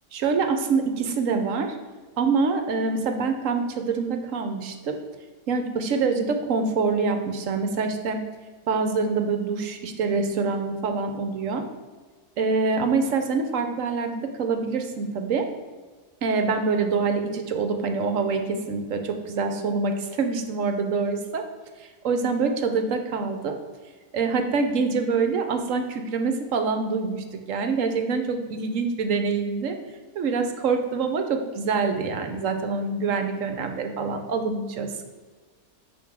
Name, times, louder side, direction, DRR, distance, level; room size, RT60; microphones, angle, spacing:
voice 1, 0.1-1.8 2.2-5.0 5.5-8.2 8.7-11.6 12.4-15.5 16.2-21.4 21.8-23.6 24.1-29.8 30.2-35.0, right 4 dB, 60° right, 6 dB, 1.0 m, -25 dB
5.8 x 4.6 x 6.1 m, 1.4 s
omnidirectional pair, 1.7 m